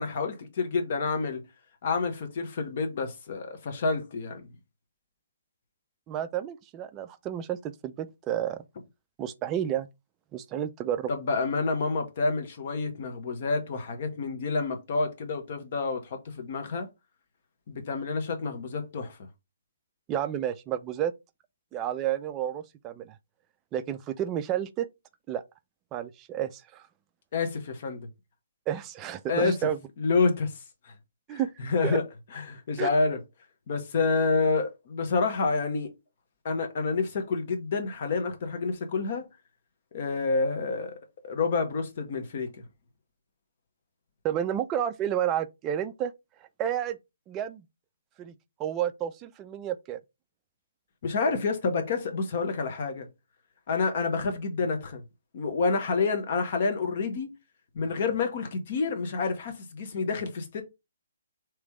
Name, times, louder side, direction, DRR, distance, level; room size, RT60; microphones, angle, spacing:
voice 1, 0.0-1.4 1.8-4.5 11.1-16.9 17.7-19.2 27.3-28.1 29.3-29.5 30.0-30.5 30.8-30.9 31.3-32.0 32.5-33.2 33.7-35.9 36.4-39.3 39.9-42.5 51.0-53.1 53.7-55.0 55.3-57.3 57.7-60.6, left 4 dB, 45° left, 1.1 m, -28 dB
voice 2, 6.1-8.6 9.2-9.9 10.3-11.1 20.1-21.1 21.7-23.2 23.7-24.9 25.3-25.4 25.9-26.8 28.7-29.8 31.3-31.5 31.8-32.0 32.8-32.9 44.2-46.1 46.6-47.0 47.3-47.7 48.2-48.3 48.6-50.0, right 10 dB, 20° right, 0.4 m, -30 dB
3.3 x 3.1 x 4.8 m
figure-of-eight pair, 130°, 0 cm